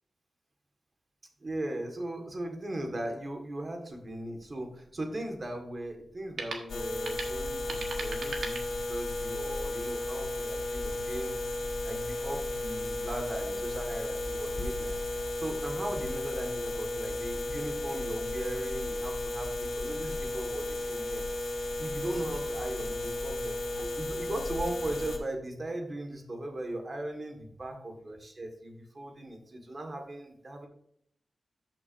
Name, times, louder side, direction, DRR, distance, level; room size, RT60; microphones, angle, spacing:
voice 1, 1.4-11.4 11.8-14.9 15.4-21.3 21.8-30.7, right 1 dB, 35° right, 3 dB, 1.7 m, -38 dB
sound 1, 3.9-9.3, right 3 dB, 70° right, 1.5 m, -42 dB
sound 2, 6.7-25.2, left 1 dB, 80° left, 1.5 m, -34 dB
14.0 x 6.1 x 2.7 m, 0.69 s
wide cardioid pair, 155°, 0 cm